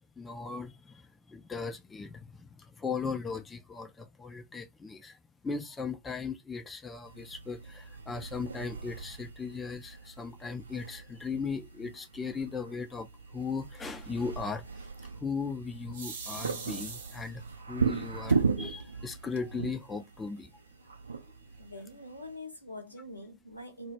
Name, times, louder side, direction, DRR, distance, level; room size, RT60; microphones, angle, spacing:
voice 1, 0.2-14.7 15.2-17.4 17.7-20.5, left 5 dB, 15° left, 0.4 m, -38 dB
sound 1, 7.1-22.3, right 5 dB, 75° right, 0.4 m, -37 dB
sound 2, 15.9-17.5 18.3-18.4 18.8-18.9 19.2-19.8, right 5 dB, 60° right, 0.8 m, -42 dB
voice 2, 21.6-23.9, left 1 dB, 85° left, 0.6 m, -44 dB
2.1 x 2.0 x 3.1 m
figure-of-eight pair, 90°, 0 cm